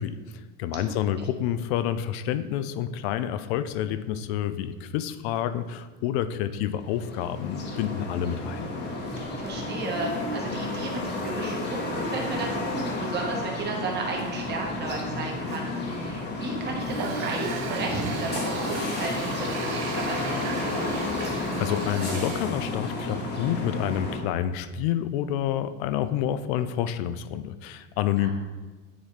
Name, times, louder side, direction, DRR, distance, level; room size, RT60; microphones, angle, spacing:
voice 1, 0.0-8.7 21.6-28.3, left 10 dB, 55° left, 13 dB, 0.5 m, -28 dB
sound 1, 6.8-24.2, left 2 dB, 30° left, 1.1 m, -31 dB
voice 2, 9.4-20.8 28.2-28.3, right 3 dB, 25° right, -1 dB, 1.4 m, -34 dB
Water tap faucet, 16.8-22.6, right 6 dB, 45° right, 0.7 m, -36 dB
9.3 x 4.0 x 3.3 m, 1.2 s
supercardioid pair, 130°, 37 cm